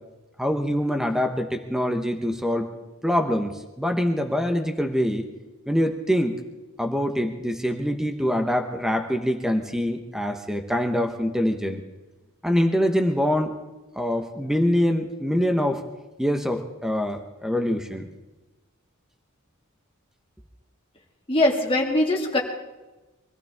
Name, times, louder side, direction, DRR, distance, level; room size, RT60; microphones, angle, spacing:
voice 1, 0.4-2.7 3.0-5.3 5.7-6.4 6.8-11.8 12.4-13.5 14.0-15.8 16.2-18.1, equal, ahead, 5 dB, 1.1 m, -24 dB
voice 2, 21.3-22.4, left 1 dB, 25° left, -1 dB, 2.6 m, -21 dB
24.0 x 15.0 x 3.6 m, 1.1 s
head